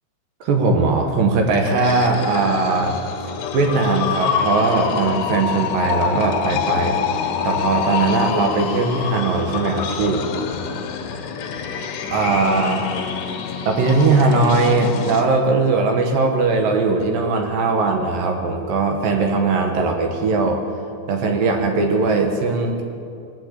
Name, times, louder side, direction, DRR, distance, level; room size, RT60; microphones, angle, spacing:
voice 1, 0.4-3.0 3.5-7.0 7.4-10.3 12.1-12.9 13.7-20.6 21.1-22.8, right 3 dB, 65° right, 3 dB, 2.4 m, -19 dB
sound 1, 1.5-15.2, left 7 dB, 75° left, 3.2 m, -26 dB
21.0 x 8.5 x 8.2 m, 2.5 s
omnidirectional pair, 5.2 m